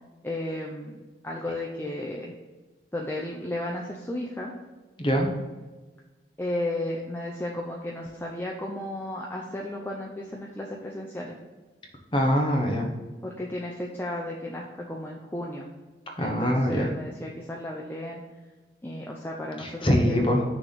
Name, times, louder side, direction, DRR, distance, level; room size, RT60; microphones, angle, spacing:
voice 1, 0.2-1.0 1.2-2.3 2.9-4.5 6.4-11.4 13.2-15.7 16.2-18.2 18.8-20.4, left 1 dB, 15° left, -2 dB, 0.5 m, -34 dB
voice 2, 5.0-5.3 12.1-12.9 16.2-16.9 19.6-20.4, equal, 30° left, 0 dB, 1.1 m, -23 dB
6.1 x 3.5 x 5.9 m, 1.3 s
head